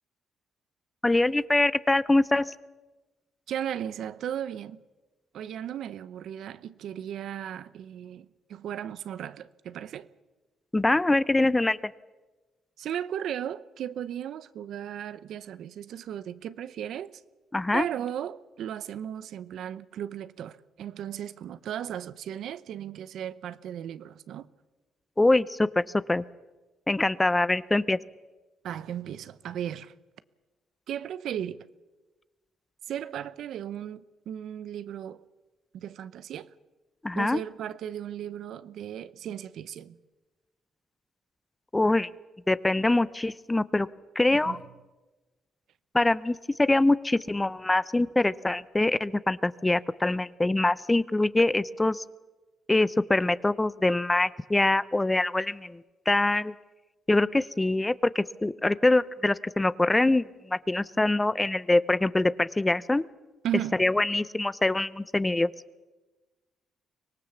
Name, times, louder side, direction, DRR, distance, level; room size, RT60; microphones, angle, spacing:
voice 1, 1.0-2.5 10.7-11.8 17.5-17.9 25.2-25.8 26.1-26.2 26.9-28.0 37.0-37.4 41.7-42.1 42.5-43.9 44.2-44.6 45.9-52.0 52.7-56.5 57.1-63.1 63.8-65.5, left 2 dB, 15° left, 0.6 m, -24 dB
voice 2, 3.5-4.8 5.3-10.1 12.8-17.1 17.7-24.5 28.6-29.9 30.9-31.6 32.9-35.2 35.7-36.5 37.1-40.0 44.3-44.6 63.4-63.9, right 10 dB, 75° right, 0.7 m, -36 dB
24.5 x 18.5 x 7.2 m
cardioid pair, 90°, 0 cm